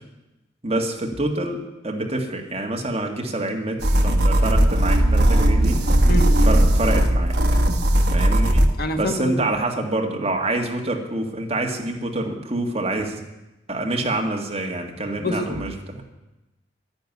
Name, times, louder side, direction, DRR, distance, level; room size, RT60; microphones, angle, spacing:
voice 1, 0.6-5.8 6.4-7.3 8.1-8.6 9.0-13.2 13.7-16.0, right 2 dB, 30° right, 2 dB, 1.9 m, -26 dB
sound 1, 3.8-8.7, right 1 dB, 55° right, 1.4 m, -17 dB
voice 2, 6.1-6.5 8.8-9.5 15.2-15.5, left 1 dB, 50° left, 5 dB, 1.4 m, -26 dB
11.5 x 11.5 x 9.5 m, 0.99 s
head